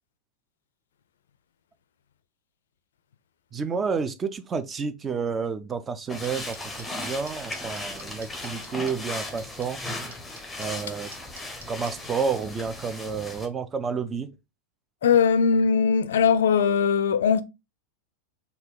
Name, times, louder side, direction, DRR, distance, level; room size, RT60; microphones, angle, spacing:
voice 1, 3.5-9.8 10.6-11.1 11.7-14.3, right 5 dB, 20° right, 0.5 m, -30 dB
sound 1, 6.1-13.5, left 2 dB, 5° left, 0.8 m, -37 dB
sound 2, 6.2-11.9, right 3 dB, 65° right, 1.0 m, -45 dB
voice 2, 15.0-17.4, left 6 dB, 60° left, 0.4 m, -20 dB
4.0 x 2.3 x 3.7 m
figure-of-eight pair, 90°, 0 cm